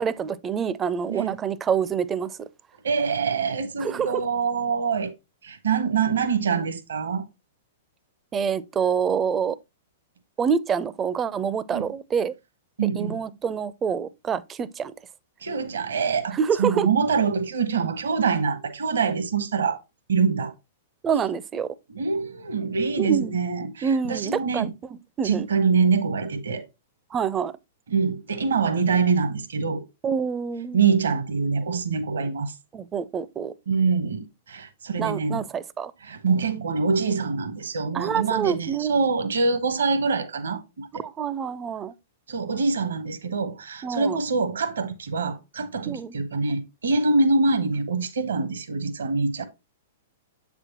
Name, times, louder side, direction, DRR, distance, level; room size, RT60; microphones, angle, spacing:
voice 1, 0.0-2.5 3.8-4.1 8.3-9.6 10.4-12.3 12.9-14.9 16.3-16.9 21.0-21.7 23.0-23.4 23.8-24.7 25.2-25.5 27.1-27.5 30.0-30.8 32.7-33.5 35.0-35.9 37.9-38.9 41.0-41.9 43.8-44.2 45.9-46.1, right 7 dB, 20° right, 0.5 m, -26 dB
voice 2, 2.8-5.1 5.4-7.2 11.7-11.9 12.8-13.2 15.4-19.8 20.1-20.5 21.9-24.7 25.2-26.7 27.9-29.8 30.7-32.5 33.7-35.4 36.0-41.0 42.3-49.5, right 5 dB, 70° right, 1.0 m, -25 dB
7.8 x 6.1 x 2.8 m
figure-of-eight pair, 105°, 0 cm